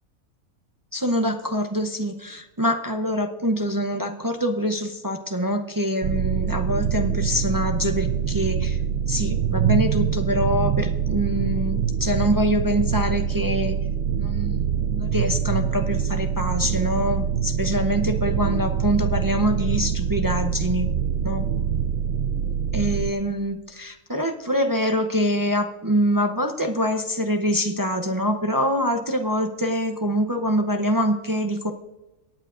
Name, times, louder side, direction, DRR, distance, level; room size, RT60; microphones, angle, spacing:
voice 1, 0.9-8.8 9.1-13.8 14.1-20.9 21.2-21.4 22.7-31.7, equal, 30° right, 5 dB, 0.4 m, -25 dB
sound 1, 6.0-23.1, right 8 dB, 65° right, 0.7 m, -24 dB
22.5 x 9.2 x 2.5 m, 1.1 s
omnidirectional pair, 1.5 m